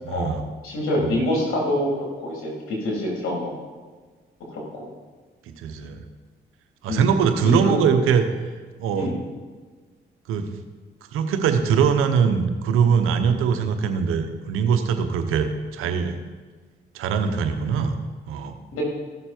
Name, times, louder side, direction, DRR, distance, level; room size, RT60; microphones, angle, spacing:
voice 1, 0.1-0.4 1.0-1.1 5.5-6.0 6.8-8.3 8.8-9.1 10.3-10.5 11.1-16.2 16.9-18.0 18.3-18.6, right 6 dB, 90° right, 7 dB, 1.0 m, -22 dB
voice 2, 0.6-3.5 4.5-4.9 6.9-7.1 7.4-7.7 8.9-9.2 13.3-13.4 15.8-15.9 18.7-18.8, left 1 dB, 80° left, -2 dB, 3.7 m, -26 dB
15.0 x 6.8 x 4.5 m, 1.4 s
supercardioid pair, 65°, 21 cm